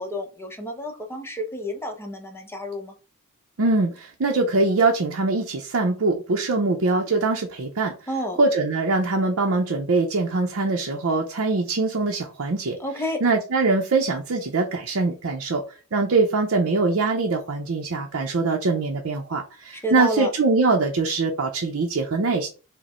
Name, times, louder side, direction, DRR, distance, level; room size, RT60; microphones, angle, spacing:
voice 1, 0.0-2.9 8.1-8.4 12.8-13.2 19.7-20.3, equal, 10° left, 0.7 m, -30 dB
voice 2, 3.6-7.9 8.4-12.8 13.2-15.6 15.9-22.5, right 3 dB, 65° right, 0.6 m, -23 dB
5.0 x 2.1 x 4.2 m
head